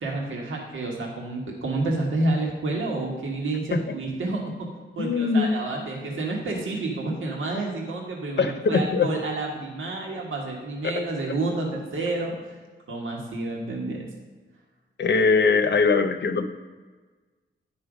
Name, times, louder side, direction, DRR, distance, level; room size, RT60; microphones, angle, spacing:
voice 1, 0.0-4.7 5.0-12.3 12.9-14.0, right 2 dB, 85° right, -1 dB, 1.6 m, -29 dB
voice 2, 5.0-5.5 8.4-9.1 10.8-11.0 15.0-16.5, left 4 dB, 60° left, 9 dB, 0.7 m, -21 dB
9.7 x 5.6 x 5.1 m, 1.4 s
wide cardioid pair, 110°, 20 cm